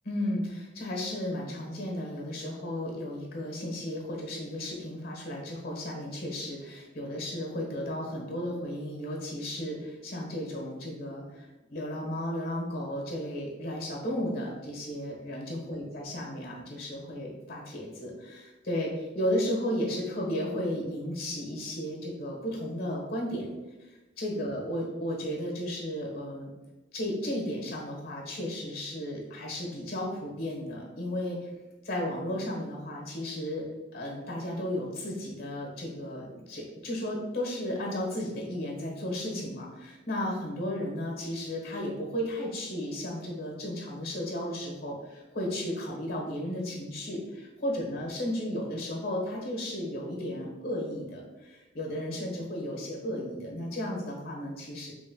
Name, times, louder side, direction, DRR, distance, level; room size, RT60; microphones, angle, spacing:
voice 1, 0.0-23.5 24.2-26.5 26.9-31.5 31.8-33.6 33.9-54.9, left 1 dB, 50° left, -1 dB, 1.3 m, -34 dB
5.2 x 3.3 x 2.3 m, 1.1 s
head